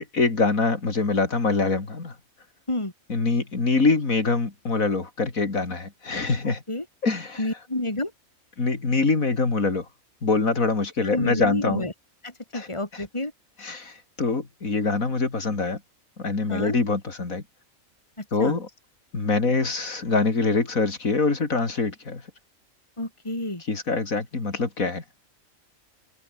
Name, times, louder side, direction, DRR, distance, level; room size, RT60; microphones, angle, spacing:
voice 1, 0.0-2.1 3.1-6.6 7.0-7.5 8.6-9.9 10.2-11.9 12.5-12.7 12.9-13.0 13.6-15.8 16.2-17.4 18.3-18.7 19.1-22.2 23.7-25.0, left 3 dB, 75° left, 3.7 m, -24 dB
voice 2, 7.4-8.1 11.0-11.9 12.2-13.3 16.5-16.8 18.2-18.6 23.0-23.6, left 1 dB, 20° left, 3.7 m, -29 dB
omnidirectional pair, 1.5 m